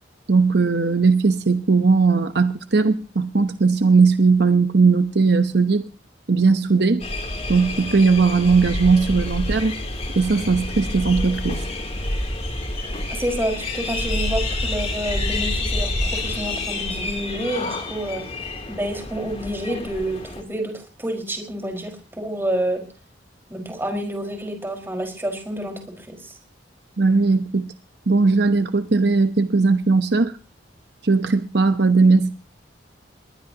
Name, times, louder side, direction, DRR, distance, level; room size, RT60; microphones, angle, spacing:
voice 1, 0.3-5.9 6.3-7.0 7.5-9.7 10.2-11.6 27.0-27.6 28.1-30.4 31.0-32.3, right 4 dB, 65° right, 9 dB, 0.9 m, -18 dB
sound 1, 7.0-20.4, left 1 dB, 35° left, 3.1 m, -28 dB
voice 2, 13.1-18.2 18.7-22.8 23.5-26.3, right 1 dB, 15° right, 3 dB, 4.9 m, -28 dB
22.0 x 19.5 x 2.9 m, 0.36 s
head